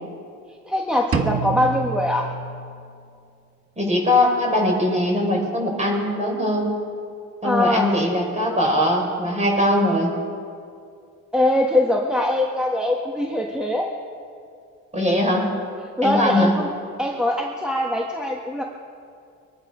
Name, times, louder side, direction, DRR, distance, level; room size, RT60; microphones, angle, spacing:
voice 1, 0.7-2.3 7.4-7.9 11.3-13.9 16.0-16.7 17.0-18.6, left 1 dB, 5° right, -1 dB, 1.5 m, -22 dB
sound 1, 1.1-3.1, right 6 dB, 45° right, 1.2 m, -28 dB
voice 2, 3.8-6.7 7.4-10.1 14.9-15.5 16.0-16.5, left 1 dB, 25° right, 0 dB, 4.5 m, -21 dB
23.0 x 11.5 x 5.0 m, 2.4 s
cardioid pair, 90°, 30 cm